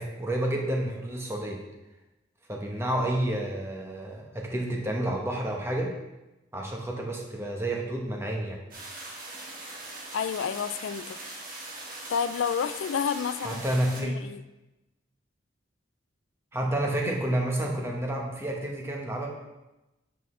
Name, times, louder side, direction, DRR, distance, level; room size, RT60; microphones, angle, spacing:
voice 1, 0.0-1.6 2.5-5.9 6.5-8.6 13.4-14.2 16.5-19.3, right 1 dB, 15° right, 0 dB, 1.0 m, -30 dB
sound 1, 8.7-14.0, right 2 dB, 45° right, 1.5 m, -41 dB
voice 2, 10.1-11.2 12.1-13.6 14.0-14.4, left 7 dB, 90° left, 13 dB, 0.4 m, -30 dB
8.2 x 5.6 x 3.2 m, 1.0 s
head